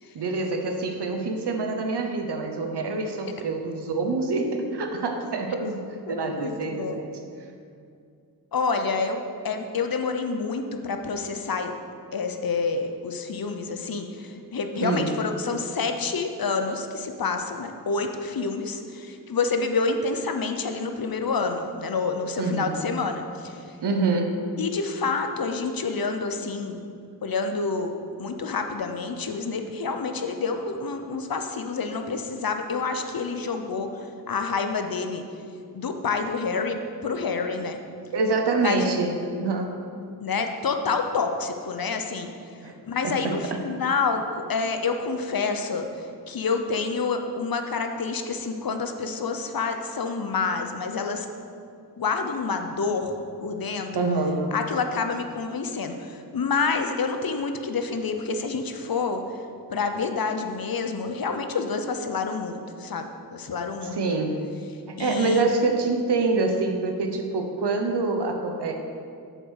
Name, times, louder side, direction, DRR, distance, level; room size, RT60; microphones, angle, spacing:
voice 1, 0.1-7.2 14.8-15.1 22.4-22.8 23.8-24.4 38.1-39.8 42.6-42.7 43.0-43.6 53.9-54.5 63.8-64.5 64.9-68.7, right 3 dB, 85° right, 4 dB, 0.9 m, -26 dB
voice 2, 6.1-7.0 8.5-11.7 12.1-23.8 24.6-26.8 27.2-27.9 28.2-35.2 35.7-37.8 38.6-38.9 40.2-42.3 42.9-44.2 44.5-51.3 52.0-53.9 54.5-59.4 59.7-64.0 65.0-65.5, left 4 dB, 60° left, 6 dB, 0.8 m, -28 dB
7.6 x 4.9 x 6.4 m, 2.4 s
cardioid pair, 45°, 39 cm